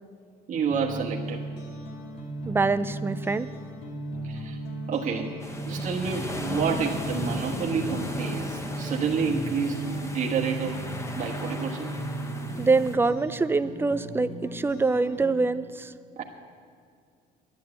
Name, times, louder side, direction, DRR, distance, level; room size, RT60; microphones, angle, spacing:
sound 1, 0.5-15.3, right 1 dB, 75° left, 2.6 m, -36 dB
voice 1, 0.5-1.4 4.2-4.6 4.9-5.4 5.7-10.8 11.1-12.0 16.2-16.3, right 5 dB, 50° right, -1 dB, 1.4 m, -29 dB
voice 2, 2.5-3.5 12.6-15.9, right 3 dB, 15° right, 13 dB, 0.4 m, -25 dB
sound 2, 5.4-12.9, left 1 dB, 15° left, 1.1 m, -37 dB
11.0 x 10.5 x 8.2 m, 2.2 s
cardioid pair, 110°, 17 cm